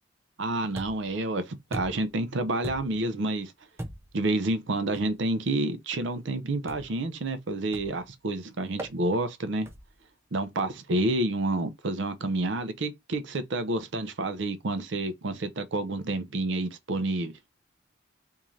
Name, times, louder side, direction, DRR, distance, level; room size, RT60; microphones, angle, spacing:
voice 1, 0.4-3.5 4.1-9.7 10.3-17.3, right 2 dB, 60° right, 0.6 m, -29 dB
sound 1, 0.8-1.2 1.7-2.2 2.6-3.1 3.8-4.2 4.9-5.2 6.7-7.0 7.7-8.1 8.8-9.0 9.7-10.0, right 1 dB, 10° right, 0.5 m, -39 dB
3.6 x 2.7 x 3.1 m
head